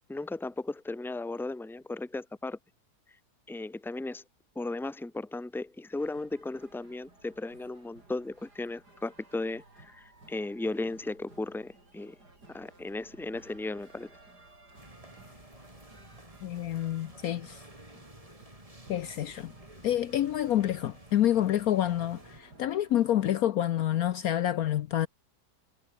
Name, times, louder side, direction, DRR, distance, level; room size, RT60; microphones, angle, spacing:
voice 1, 0.1-2.6 3.5-4.2 4.5-12.2 12.5-14.1, left 2 dB, ahead, 1.2 m, -36 dB
sound 1, 6.0-23.4, right 2 dB, 70° right, 6.7 m, -57 dB
sound 2, 14.7-22.4, right 1 dB, 20° right, 5.0 m, -52 dB
voice 2, 16.4-17.6 18.9-19.5 19.8-25.1, left 12 dB, 65° left, 1.1 m, -28 dB
omnidirectional pair, 1.8 m